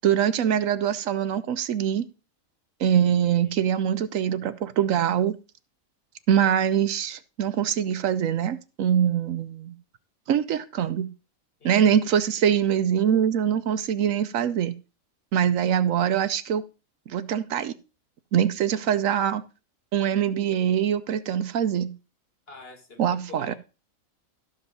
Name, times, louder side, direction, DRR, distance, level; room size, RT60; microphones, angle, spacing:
voice 1, 0.0-2.1 2.8-5.4 6.3-9.7 10.3-11.1 11.6-14.7 15.3-16.6 17.1-17.7 18.3-19.4 19.9-21.9 23.0-23.5, right 9 dB, 75° right, 1.1 m, -23 dB
voice 2, 3.2-3.7 11.6-12.0 22.5-23.6, left 2 dB, 45° left, 1.9 m, -47 dB
13.0 x 5.3 x 5.4 m
omnidirectional pair, 1.4 m